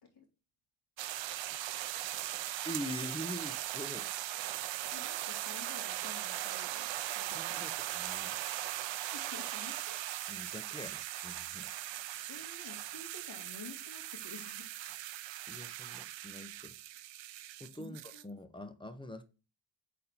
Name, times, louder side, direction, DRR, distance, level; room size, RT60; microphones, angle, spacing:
sound 1, 1.0-18.2, right 14 dB, 70° right, 0.5 m, -39 dB
voice 1, 2.6-4.1 7.3-8.5 10.3-11.7 15.5-16.8 17.6-19.2, left 1 dB, 10° left, 0.6 m, -44 dB
voice 2, 4.9-6.9 7.1-7.7 9.1-10.0 12.3-14.7 17.8-18.3, left 4 dB, 55° left, 2.3 m, -51 dB
4.2 x 4.1 x 5.6 m
cardioid pair, 100°, 46 cm